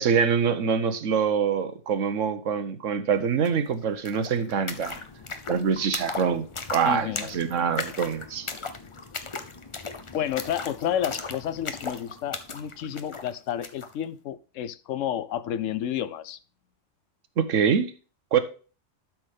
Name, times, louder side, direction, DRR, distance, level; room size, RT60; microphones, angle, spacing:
voice 1, 0.0-5.0 5.5-6.4 6.7-8.5 17.4-17.9 18.3-18.4, right 7 dB, 80° right, 1.3 m, -25 dB
sound 1, 3.4-3.5 3.8-13.9, left 4 dB, 30° left, 0.7 m, -37 dB
voice 2, 6.8-7.3 10.1-16.4, left 10 dB, 80° left, 1.0 m, -30 dB
12.0 x 6.1 x 3.5 m
omnidirectional pair, 1.3 m